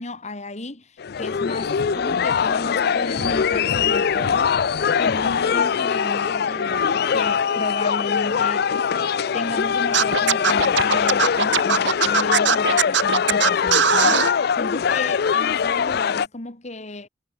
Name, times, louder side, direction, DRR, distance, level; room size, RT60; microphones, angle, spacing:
voice 1, 0.0-4.6 5.0-8.7 9.3-17.1, left 2 dB, 40° left, 2.2 m, -34 dB
sound 1, 1.0-16.3, left 7 dB, 60° left, 0.4 m, -22 dB
sound 2, 1.2-14.0, right 2 dB, 60° right, 2.0 m, -41 dB
Scratching (performance technique), 9.9-14.3, right 7 dB, 80° right, 1.6 m, -19 dB
head